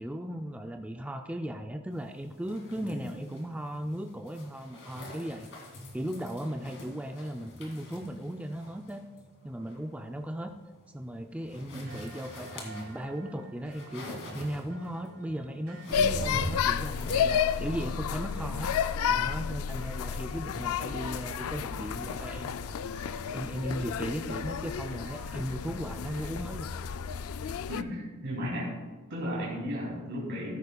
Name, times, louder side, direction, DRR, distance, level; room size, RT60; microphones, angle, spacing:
voice 1, 0.0-5.5 5.9-9.0 9.4-10.5 10.9-14.1 14.3-18.7 19.0-22.8 23.3-26.7, equal, 5° right, 4 dB, 0.4 m, -37 dB
sound 1, 1.9-17.3, equal, 60° left, 2.5 m, -45 dB
sound 2, 9.3-26.3, right 3 dB, 90° right, 1.3 m, -53 dB
sound 3, 15.9-27.8, left 7 dB, 80° left, 0.4 m, -31 dB
voice 2, 27.7-28.7 29.1-30.6, equal, 55° right, -6 dB, 3.0 m, -35 dB
14.0 x 11.5 x 2.3 m, 1.4 s
head